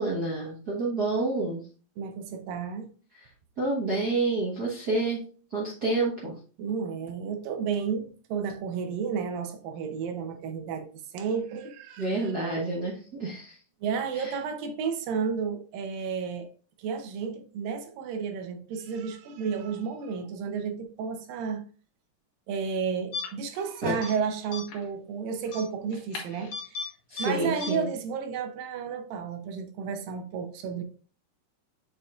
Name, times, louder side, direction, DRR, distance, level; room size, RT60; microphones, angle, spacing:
voice 1, 0.0-1.6 3.1-3.2 3.6-5.2 5.5-6.3 12.0-13.6 14.1-14.3 23.8-23.9 27.1-27.9, right 2 dB, 65° right, 0.9 m, -28 dB
voice 2, 2.0-2.9 6.6-12.3 13.8-16.5 16.8-21.6 22.5-26.8 27.2-30.8, right 6 dB, 85° right, 2.6 m, -32 dB
sound 1, 23.1-23.6 23.9-24.1 24.5-24.9 25.5-26.9 27.2-27.3 27.6-27.7, left 4 dB, 60° left, 2.3 m, -36 dB
7.4 x 5.1 x 2.4 m
omnidirectional pair, 3.9 m